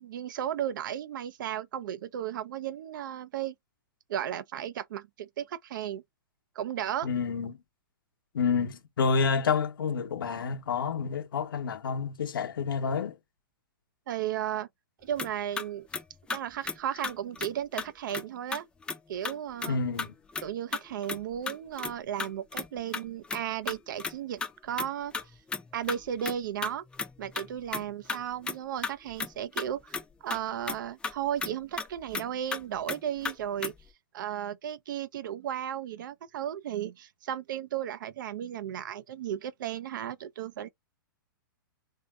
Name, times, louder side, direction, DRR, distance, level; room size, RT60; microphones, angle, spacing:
voice 1, 0.0-3.5 4.1-6.0 6.6-7.1 14.1-14.7 15.0-15.9 16.3-18.7 19.1-19.8 20.4-25.1 25.7-26.8 27.2-30.0 30.2-33.7 34.1-40.7, right 10 dB, 65° right, 0.5 m, -34 dB
voice 2, 7.0-7.6 8.3-13.2 19.7-20.1, left 5 dB, 80° left, 0.9 m, -29 dB
sound 1, 15.2-15.3 15.6-15.7 15.9-16.0 16.3-16.4 16.7-16.8 17.0-17.5 17.8-18.2 18.5-19.0 19.2-19.3 19.6-19.7 20.0-20.4 20.7-22.7 22.9-23.4 23.7-24.5 24.8-24.9 25.1-26.3 26.6-27.8 28.1-28.2 28.5-28.6 28.8-29.3 29.6-30.0 30.3-30.4 30.7-30.8 31.0-31.1 31.4-32.3 32.5-32.6 32.9-33.0 33.2-33.3 33.6-33.9, left 4 dB, 10° left, 0.5 m, -34 dB
3.4 x 2.6 x 2.3 m
hypercardioid pair, 125°, 11 cm